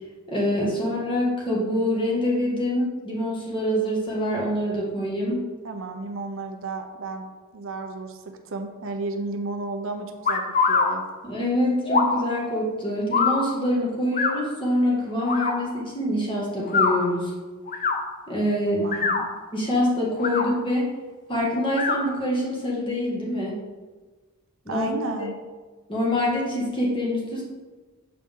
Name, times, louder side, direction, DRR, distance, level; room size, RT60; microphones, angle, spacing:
voice 1, 0.3-5.4 11.2-17.3 18.3-18.9 19.5-20.9 21.3-23.6 24.6-24.9 25.2-25.3 25.9-27.4, left 1 dB, 25° left, -5 dB, 1.7 m, -25 dB
voice 2, 5.6-7.3 7.5-10.4 10.7-11.0 18.7-19.3 24.7-25.3, right 3 dB, 60° right, 5 dB, 0.6 m, -32 dB
sound 1, 10.2-10.9 11.9-12.2 13.1-13.4 14.1-14.3 15.2-15.5 16.6-16.9 17.7-18.0 18.8-19.2 20.1-20.5 21.7-22.0, left 5 dB, 40° left, 0.6 m, -22 dB
7.4 x 4.5 x 3.6 m, 1.3 s
head